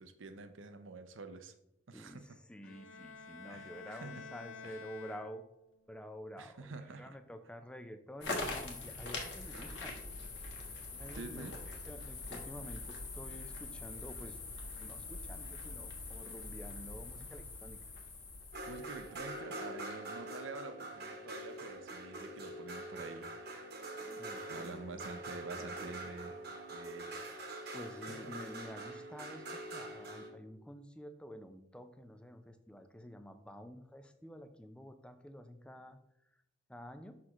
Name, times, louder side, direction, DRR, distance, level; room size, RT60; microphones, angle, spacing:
voice 1, 0.0-1.5 1.9-2.4 3.5-4.2 4.6-4.8 6.4-7.2 9.5-9.8 11.1-11.6 18.7-23.6 24.5-27.2 27.9-28.4, right 3 dB, 80° right, 10 dB, 0.7 m, -48 dB
voice 2, 1.9-5.4 5.9-9.9 10.9-14.4 14.8-17.8 24.0-24.9 27.7-36.0 36.7-37.2, equal, 5° left, 8 dB, 0.4 m, -50 dB
Bowed string instrument, 2.6-5.8, left 5 dB, 85° left, 0.5 m, -50 dB
sound 1, 8.2-19.4, left 3 dB, 65° left, 1.4 m, -43 dB
sound 2, 18.5-30.3, right 1 dB, 55° right, 1.1 m, -44 dB
6.3 x 5.8 x 3.0 m, 0.81 s
head